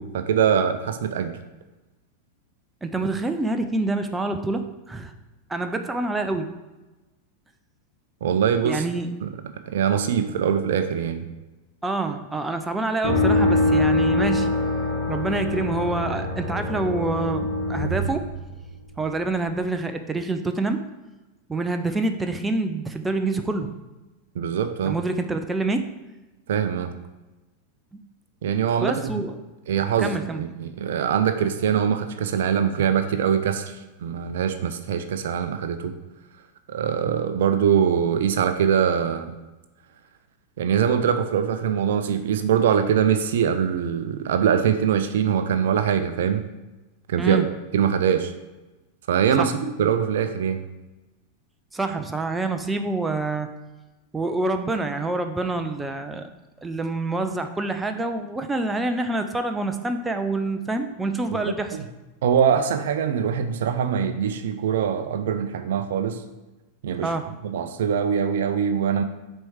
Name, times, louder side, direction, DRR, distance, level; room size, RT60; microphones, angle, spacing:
voice 1, 0.0-1.4 8.2-8.8 9.2-9.3 9.7-11.2 24.4-24.9 26.5-26.9 28.4-29.2 29.7-33.7 34.0-35.9 36.7-39.3 40.6-46.4 47.1-47.4 47.7-48.3 49.1-50.6 61.4-61.9 62.2-66.2 66.8-67.1 67.5-69.0, right 8 dB, 60° right, 9 dB, 0.5 m, -23 dB
voice 2, 2.8-5.1 5.5-6.5 8.6-9.1 11.8-14.5 15.1-18.3 19.0-20.8 21.5-23.7 24.8-25.9 28.8-29.4 30.0-30.5 47.2-47.5 49.4-49.5 51.7-53.5 54.1-56.3 56.6-61.8 67.0-67.3, right 2 dB, 10° right, 6 dB, 0.6 m, -26 dB
sound 1, 13.0-18.9, left 2 dB, 55° left, 2.3 m, -24 dB
6.2 x 4.5 x 4.9 m, 1.1 s
figure-of-eight pair, 90°, 0 cm